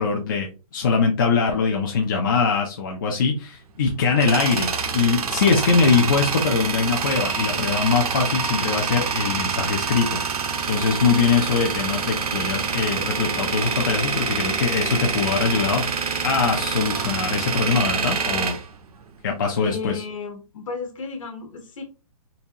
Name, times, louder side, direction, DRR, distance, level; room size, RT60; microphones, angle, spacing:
voice 1, 0.0-10.2 10.7-18.6 19.2-20.0, left 5 dB, 35° left, 1 dB, 0.5 m, -22 dB
Tools, 3.7-19.5, right 5 dB, 75° right, 0.9 m, -26 dB
voice 2, 19.6-21.8, left 5 dB, 55° left, 5 dB, 1.2 m, -33 dB
4.0 x 2.6 x 2.8 m, 0.33 s
hypercardioid pair, 175°, 19 cm